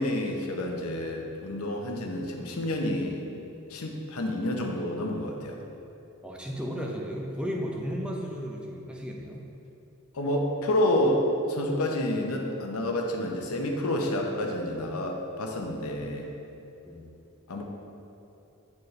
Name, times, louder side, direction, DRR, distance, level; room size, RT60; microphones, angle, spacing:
voice 1, 0.0-3.3 3.7-5.6 10.1-16.3 17.5-17.6, left 1 dB, 80° left, 1 dB, 0.8 m, -29 dB
voice 2, 6.2-9.5 16.9-17.1, equal, 5° right, -1 dB, 0.5 m, -34 dB
8.3 x 4.5 x 3.2 m, 2.9 s
head